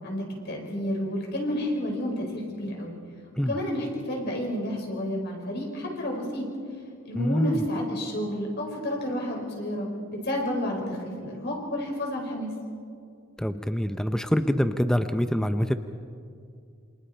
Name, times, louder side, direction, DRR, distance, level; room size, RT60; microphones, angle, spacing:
voice 1, 0.0-3.0 3.4-6.5 7.1-12.5, equal, 55° left, 0 dB, 5.1 m, -30 dB
voice 2, 7.2-7.6 13.4-15.7, equal, 5° left, 9 dB, 0.6 m, -25 dB
28.0 x 26.5 x 4.5 m, 2.3 s
head